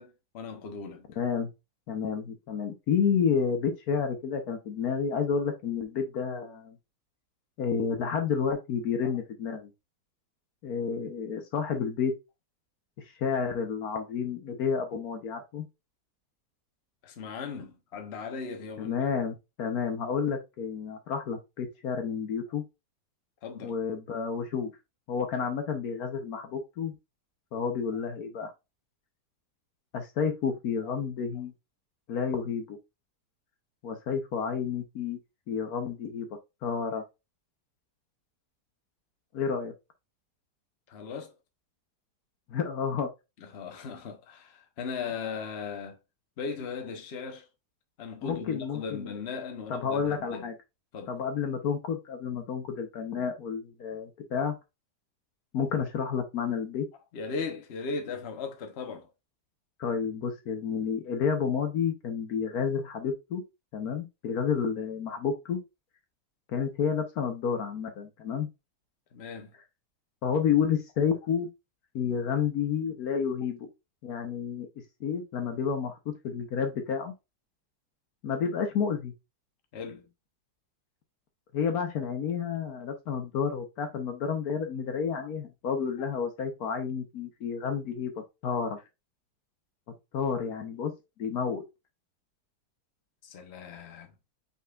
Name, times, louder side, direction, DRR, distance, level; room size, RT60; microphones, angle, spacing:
voice 1, 0.0-1.0 9.0-9.1 17.0-19.0 23.4-23.7 30.8-30.9 40.9-41.3 43.4-46.0 46.4-47.5 48.0-50.5 50.9-51.2 57.1-59.1 69.1-69.5 79.7-80.1 93.2-94.1, left 5 dB, 45° left, 1.0 m, -38 dB
voice 2, 1.2-1.5 1.9-6.8 7.6-9.7 10.6-12.1 13.1-15.7 18.8-22.6 23.6-24.7 25.1-26.9 27.5-28.5 29.9-31.5 32.1-32.8 33.8-35.2 35.5-36.3 36.6-37.0 39.3-39.7 42.5-43.1 48.2-49.1 49.7-50.6 51.1-54.6 55.5-56.9 59.8-63.4 63.7-65.6 66.5-68.5 70.2-71.5 71.9-73.7 74.0-74.7 75.0-77.1 78.2-79.1 81.5-88.8 90.1-90.9 91.2-91.6, left 6 dB, 65° left, 1.2 m, -30 dB
5.5 x 4.1 x 2.3 m
omnidirectional pair, 1.8 m